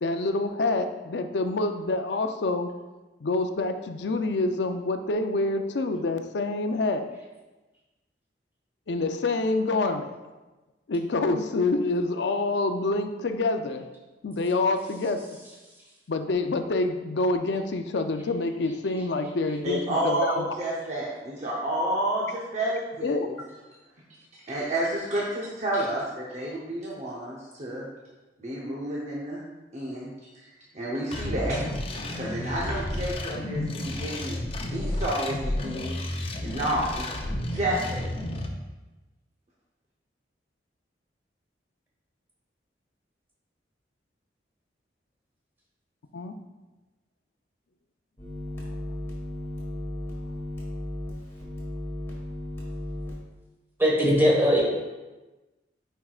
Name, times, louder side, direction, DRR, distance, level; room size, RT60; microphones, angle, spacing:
voice 1, 0.0-2.7 3.2-7.1 8.9-10.2 10.9-13.9 14.2-15.4 16.1-20.4 23.0-23.3 46.1-46.3, left 2 dB, 75° left, 7 dB, 0.5 m, -27 dB
voice 2, 19.6-23.4 24.3-27.9 28.4-29.4 29.7-30.1 30.4-30.5 30.7-34.4 34.7-37.1 37.5-38.0, right 1 dB, 40° right, -4 dB, 0.8 m, -30 dB
sound 1, 31.1-38.5, left 1 dB, 30° left, 0.6 m, -32 dB
sound 2, 48.2-53.2, left 1 dB, 15° left, 1.5 m, -35 dB
voice 3, 53.8-54.6, equal, 10° right, -4 dB, 1.4 m, -20 dB
9.6 x 4.6 x 2.4 m, 1.1 s
head